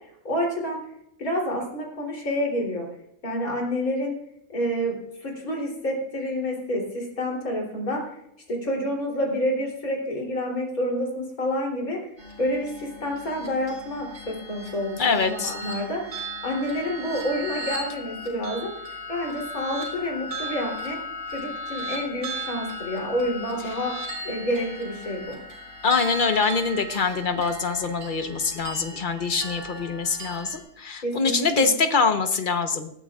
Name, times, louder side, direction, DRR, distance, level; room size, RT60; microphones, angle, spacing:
voice 1, 0.2-0.8 1.2-2.9 3.2-4.2 4.5-5.0 5.2-8.0 8.5-12.0 12.4-16.0 16.4-18.7 19.1-21.0 21.3-23.9 24.2-25.4 31.0-31.7, equal, 80° left, -1 dB, 4.0 m, -28 dB
sound 1, 12.2-30.6, equal, 55° right, 5.0 m, -37 dB
voice 2, 15.0-15.5 25.8-32.9, left 5 dB, 40° left, 7 dB, 1.1 m, -24 dB
19.5 x 13.5 x 2.5 m, 0.76 s
omnidirectional pair, 1.5 m